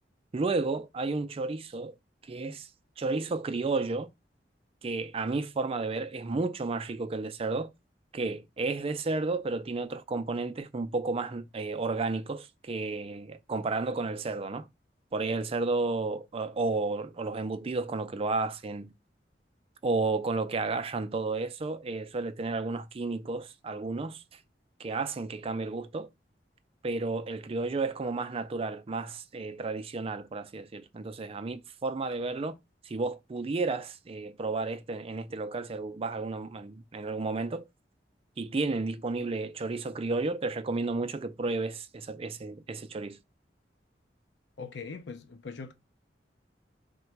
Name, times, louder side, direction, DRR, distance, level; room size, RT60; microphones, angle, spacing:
voice 1, 0.3-1.9 2.2-2.7 3.0-4.1 4.8-7.7 8.1-14.7 15.1-18.9 19.8-24.4 24.8-26.1 26.8-32.6 32.8-37.7 38.4-43.2, right 3 dB, 35° right, 0.4 m, -32 dB
voice 2, 44.6-45.7, left 4 dB, 90° left, 0.6 m, -41 dB
3.8 x 2.2 x 4.5 m
head